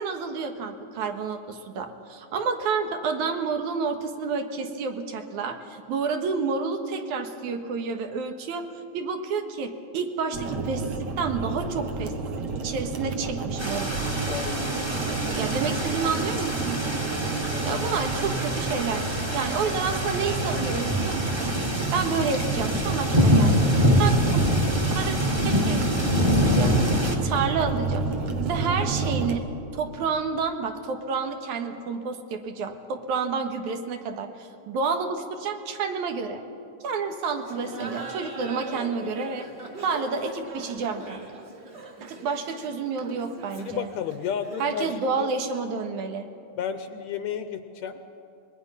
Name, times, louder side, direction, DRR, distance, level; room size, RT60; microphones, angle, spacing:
voice 1, 0.0-8.6 8.9-12.1 12.6-13.9 15.3-16.9 17.6-21.5 21.9-24.4 24.8-25.1 25.4-25.8 26.1-28.1 28.4-29.5 29.7-36.4 36.8-39.5 39.8-41.3 42.0-43.9 44.6-46.3, right 5 dB, 75° right, 6 dB, 2.7 m, -29 dB
sound 1, 10.3-29.4, right 4 dB, 60° right, 2.2 m, -30 dB
sound 2, 13.6-27.2, equal, 15° right, 1.2 m, -25 dB
voice 2, 14.3-15.3 17.5-17.8 43.6-45.3 46.6-48.0, left 8 dB, 75° left, 9 dB, 1.8 m, -33 dB
Laughter, 37.4-44.9, right 2 dB, 35° right, 2.2 m, -41 dB
25.0 x 21.5 x 5.6 m, 2.6 s
omnidirectional pair, 3.6 m